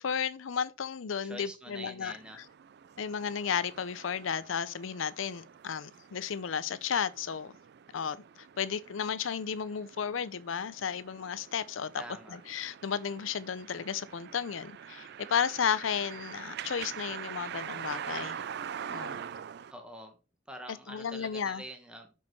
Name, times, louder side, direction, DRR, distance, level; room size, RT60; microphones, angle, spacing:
voice 1, 0.0-2.1 3.0-7.5 7.9-8.2 8.6-11.9 12.5-18.4 18.9-19.2 20.9-21.6, left 7 dB, 90° left, 0.5 m, -33 dB
voice 2, 1.2-2.4 11.9-12.4 19.7-20.2 20.5-22.1, right 1 dB, 5° right, 1.3 m, -45 dB
sound 1, 2.0-19.7, right 8 dB, 55° right, 0.4 m, -45 dB
6.3 x 5.8 x 4.6 m
head